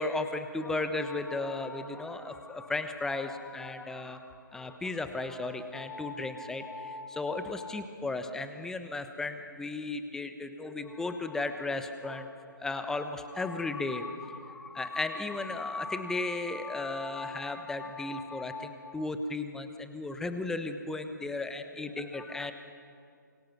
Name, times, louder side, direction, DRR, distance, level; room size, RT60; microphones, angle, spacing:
voice 1, 0.0-22.5, left 3 dB, 5° left, 8 dB, 1.0 m, -35 dB
27.0 x 24.0 x 6.0 m, 2.3 s
figure-of-eight pair, 135°, 11 cm